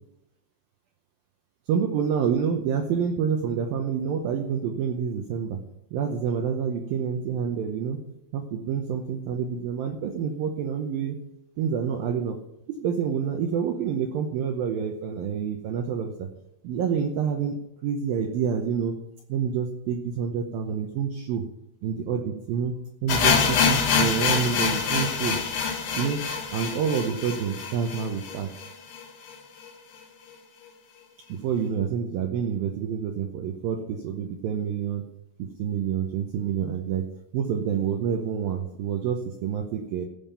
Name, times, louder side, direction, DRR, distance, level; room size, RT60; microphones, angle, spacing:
voice 1, 1.7-5.6 5.9-8.0 8.3-11.2 11.6-12.4 12.7-16.3 16.6-17.6 17.8-18.9 19.3-21.4 21.8-22.7 23.0-25.4 25.9-26.2 26.5-28.5 31.3-35.0 35.4-37.0 37.3-40.0, right 7 dB, 85° right, 4 dB, 2.0 m, -28 dB
sound 1, 23.1-29.0 29.3-29.4 29.6-29.7 30.3-30.4, left 6 dB, 60° left, 2.8 m, -25 dB
16.5 x 5.6 x 6.9 m, 0.85 s
omnidirectional pair, 5.4 m